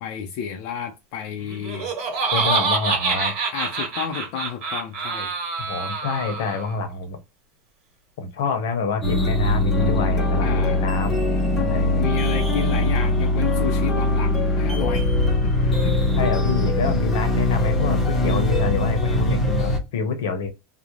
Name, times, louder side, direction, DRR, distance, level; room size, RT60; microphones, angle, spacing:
voice 1, 0.0-1.9 3.5-5.3 10.4-10.9 11.7-15.1 15.4-16.3 16.9-17.0, left 8 dB, 55° left, 0.4 m, -32 dB
Laughter, 1.5-6.7, right 4 dB, 50° right, 1.1 m, -26 dB
voice 2, 2.3-3.3 5.7-7.2 8.2-11.3 11.5-11.9 16.1-20.5, left 4 dB, 80° left, 0.8 m, -27 dB
sound 1, 9.0-19.8, left 1 dB, 15° left, 0.7 m, -21 dB
2.3 x 2.0 x 3.0 m
supercardioid pair, 155°, 0 cm